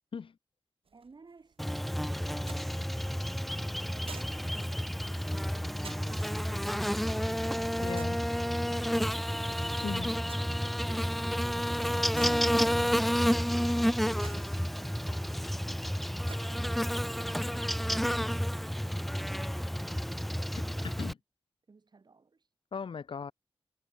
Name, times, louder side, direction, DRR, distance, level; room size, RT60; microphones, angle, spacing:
sound 1, 0.8-17.6, right 6 dB, 90° right, 5.4 m, -55 dB
voice 1, 0.9-5.4 10.8-11.6 14.3-16.0 20.3-21.1 21.7-22.5, right 4 dB, 50° right, 5.6 m, -58 dB
Buzz, 1.6-21.1, equal, ahead, 0.5 m, -30 dB
voice 2, 7.8-8.2 9.8-10.1 21.0-21.1 22.7-23.3, left 6 dB, 70° left, 0.9 m, -37 dB
wide cardioid pair, 115°, 9 cm